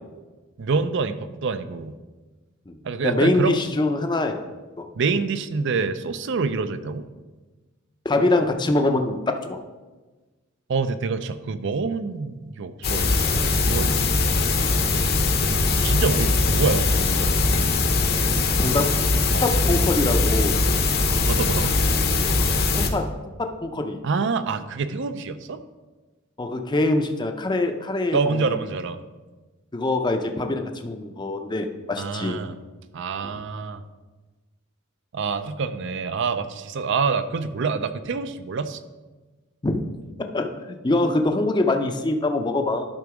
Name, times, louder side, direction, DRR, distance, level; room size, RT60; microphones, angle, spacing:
voice 1, 0.6-2.0 2.8-3.6 5.0-7.0 10.7-13.4 13.7-14.1 15.8-17.5 19.3-19.4 21.3-21.8 24.0-25.6 28.1-29.0 32.0-32.6 32.9-33.8 35.1-38.8, right 4 dB, 60° right, 12 dB, 0.5 m, -26 dB
voice 2, 3.0-4.5 4.8-4.9 8.0-9.6 18.6-19.0 19.4-20.6 22.7-23.1 23.4-24.0 26.4-28.6 29.7-32.4 33.2-33.4 39.6-39.8 40.3-42.9, left 2 dB, 20° left, 5 dB, 0.5 m, -24 dB
sound 1, 12.8-22.9, left 3 dB, 50° left, 0.8 m, -21 dB
11.5 x 3.9 x 4.8 m, 1.2 s
head